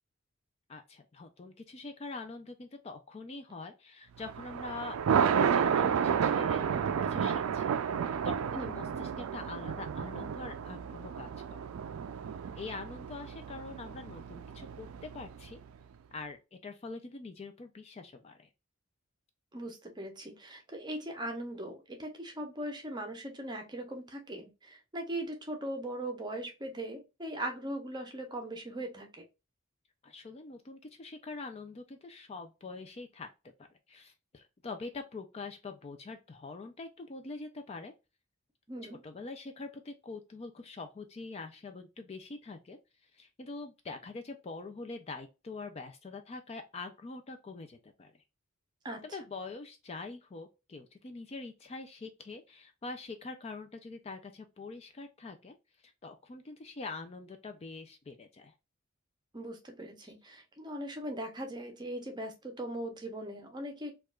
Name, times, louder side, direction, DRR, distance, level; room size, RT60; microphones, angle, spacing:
voice 1, 0.7-7.7 8.2-11.7 12.6-15.6 16.1-18.5 30.0-33.3 33.9-37.9 38.8-48.1 49.0-55.5 55.8-58.5 60.0-60.1, left 3 dB, 30° left, 0.4 m, -44 dB
Thunder, 4.2-15.5, right 7 dB, 85° right, 0.3 m, -31 dB
voice 2, 19.5-29.2 38.7-39.0 48.8-49.0 59.3-63.9, right 1 dB, 20° right, 0.7 m, -39 dB
4.5 x 2.4 x 2.3 m
head